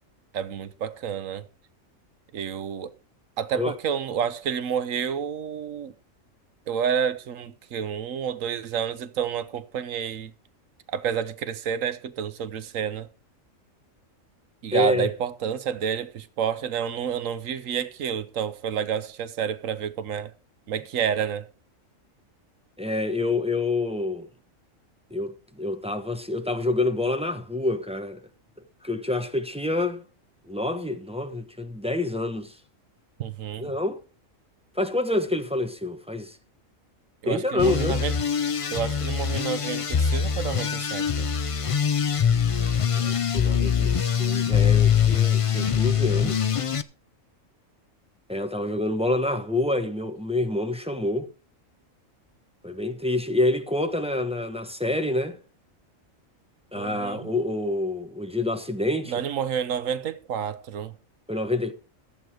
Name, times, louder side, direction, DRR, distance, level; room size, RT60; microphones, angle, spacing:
voice 1, 0.3-1.5 2.3-2.9 3.4-5.9 6.7-10.3 10.9-13.1 14.6-20.3 20.7-21.5 33.2-33.7 37.2-38.1 38.7-41.3 56.7-57.3 59.1-60.9, right 8 dB, 75° right, 1.2 m, -29 dB
voice 2, 14.7-15.1 22.8-24.3 25.1-28.2 28.8-30.0 30.5-32.6 33.6-34.0 34.7-36.4 37.3-38.0 42.9-46.5 48.3-51.3 52.6-55.4 56.7-59.1 61.3-61.7, left 2 dB, 5° right, 1.0 m, -27 dB
sound 1, 37.6-46.8, left 7 dB, 55° left, 0.3 m, -23 dB
14.5 x 7.7 x 4.9 m
omnidirectional pair, 1.4 m